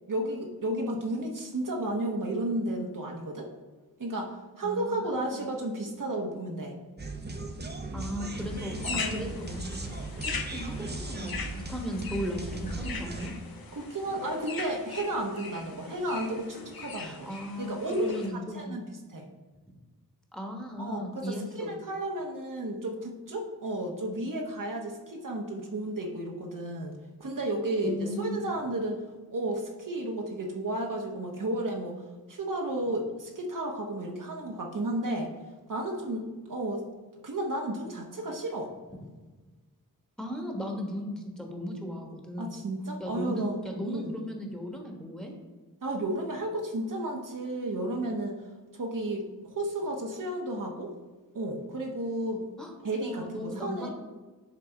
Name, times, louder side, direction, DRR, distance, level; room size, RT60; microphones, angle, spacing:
voice 1, 0.1-3.5 4.0-6.7 8.8-9.5 13.7-17.3 17.6-18.1 18.5-19.2 20.8-29.0 29.3-32.0 32.3-35.3 35.7-36.8 37.2-38.7 42.4-44.2 45.8-48.4 48.7-50.9 51.3-52.5 52.8-53.9, right 1 dB, 55° right, 1 dB, 1.1 m, -33 dB
voice 2, 4.6-5.4 7.9-8.7 9.1-9.7 10.2-13.3 17.0-18.8 20.3-21.7 27.8-28.4 38.9-39.0 40.2-42.6 43.0-45.3 52.6-52.7 53.0-53.9, equal, ahead, 1 dB, 1.4 m, -36 dB
sound 1, 7.0-13.3, right 2 dB, 25° right, 0.8 m, -37 dB
sound 2, 8.4-18.3, left 5 dB, 65° left, 1.0 m, -40 dB
10.0 x 3.3 x 4.4 m, 1.3 s
wide cardioid pair, 65°, 38 cm